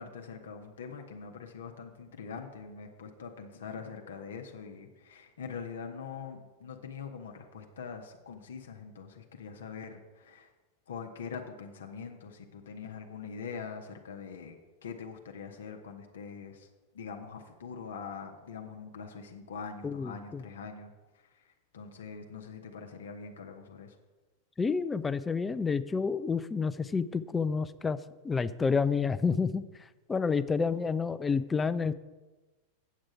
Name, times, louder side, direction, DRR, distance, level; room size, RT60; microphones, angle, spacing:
voice 1, 0.0-10.5 10.9-16.7 16.9-24.0, left 6 dB, 65° left, 4 dB, 0.8 m, -43 dB
voice 2, 19.8-20.4 24.6-28.0 28.2-29.6 30.1-31.9, left 5 dB, 15° left, 15 dB, 0.4 m, -29 dB
8.3 x 7.5 x 4.8 m, 1.2 s
figure-of-eight pair, 90°, 0 cm